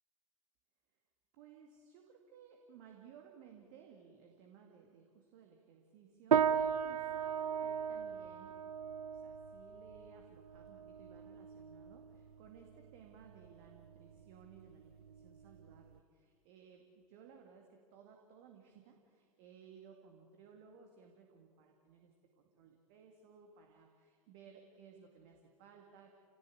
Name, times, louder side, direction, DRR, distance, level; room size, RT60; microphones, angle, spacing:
voice 1, 1.3-8.7 9.1-26.1, right 7 dB, 45° right, 2 dB, 2.3 m, -59 dB
sound 1, 6.3-16.0, right 8 dB, 70° right, 0.8 m, -37 dB
28.5 x 18.0 x 8.5 m, 2.3 s
figure-of-eight pair, 90°, 20 cm